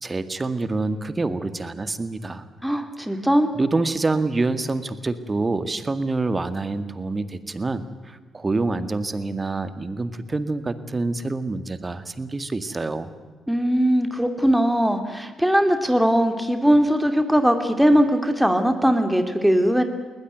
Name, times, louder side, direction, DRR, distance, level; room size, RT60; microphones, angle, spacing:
voice 1, 0.0-2.5 3.5-13.1, right 3 dB, 30° right, 11 dB, 2.0 m, -26 dB
voice 2, 2.6-3.5 13.5-19.8, equal, 5° right, 6 dB, 2.7 m, -20 dB
20.5 x 20.0 x 9.4 m, 1.4 s
hypercardioid pair, 45°, 0 cm